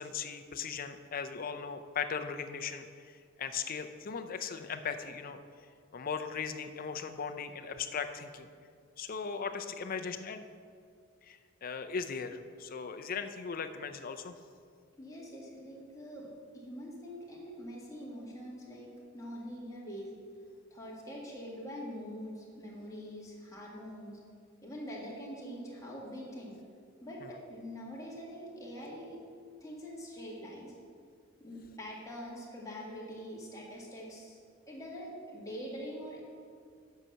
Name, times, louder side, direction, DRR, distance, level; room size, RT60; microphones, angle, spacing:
voice 1, 0.0-5.4 5.9-8.5 9.0-10.4 11.2-14.3 27.2-27.3, left 6 dB, 45° left, 8 dB, 0.5 m, -38 dB
voice 2, 15.0-20.1 20.7-24.2 24.6-26.6 27.0-29.2 29.6-30.7 31.4-34.4 34.7-36.2, equal, 15° left, -5 dB, 1.8 m, -44 dB
8.2 x 5.8 x 6.2 m, 2.2 s
head